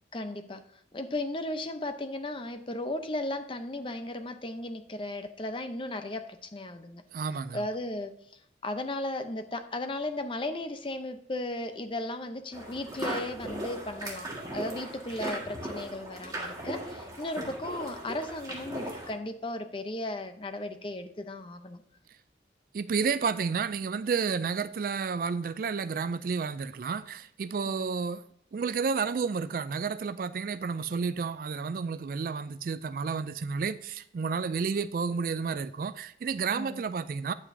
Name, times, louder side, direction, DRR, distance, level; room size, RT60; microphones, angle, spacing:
voice 1, 0.1-0.6 0.9-7.0 7.5-8.1 8.6-21.8 27.7-27.9 36.6-36.8, left 1 dB, 30° left, 0.7 m, -35 dB
voice 2, 7.1-7.6 22.7-28.2 28.5-37.3, right 5 dB, 50° right, 0.3 m, -31 dB
sound 1, 12.5-19.1, right 1 dB, 20° right, 1.7 m, -38 dB
9.3 x 8.3 x 2.7 m
head